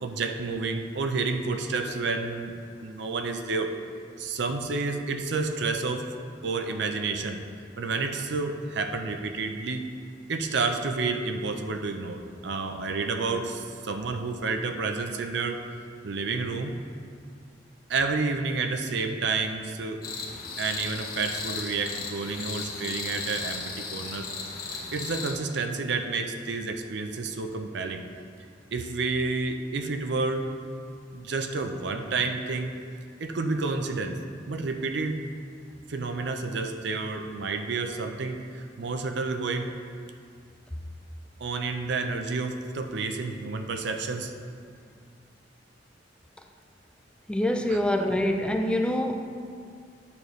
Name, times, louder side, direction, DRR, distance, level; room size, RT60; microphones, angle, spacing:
voice 1, 0.0-2.5 2.8-3.7 4.2-6.1 6.4-7.4 7.8-9.8 10.3-15.6 16.0-16.8 17.9-20.0 20.6-24.3 24.9-28.0 28.7-30.5 31.1-32.7 33.2-34.2 34.5-35.2 35.9-39.7 41.4-44.3 47.7-47.8, right 3 dB, 70° right, 6 dB, 0.6 m, -30 dB
sound 1, 20.0-25.3, left 4 dB, 55° left, 1.1 m, -36 dB
voice 2, 47.3-49.2, left 1 dB, 5° left, 3 dB, 0.4 m, -25 dB
9.4 x 6.5 x 3.2 m, 2.2 s
head